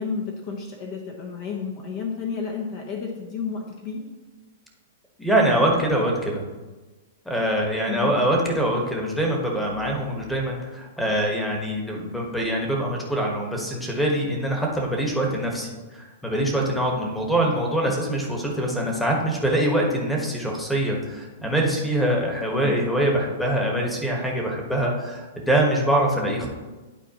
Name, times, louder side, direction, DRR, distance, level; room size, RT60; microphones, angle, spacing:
voice 1, 0.0-4.0 7.9-8.1 17.9-18.0 22.6-22.7, left 5 dB, 45° left, 0 dB, 1.1 m, -31 dB
voice 2, 5.2-6.4 7.2-26.5, right 1 dB, ahead, -1 dB, 1.3 m, -24 dB
11.5 x 4.3 x 3.0 m, 1.2 s
hypercardioid pair, 145°, 0 cm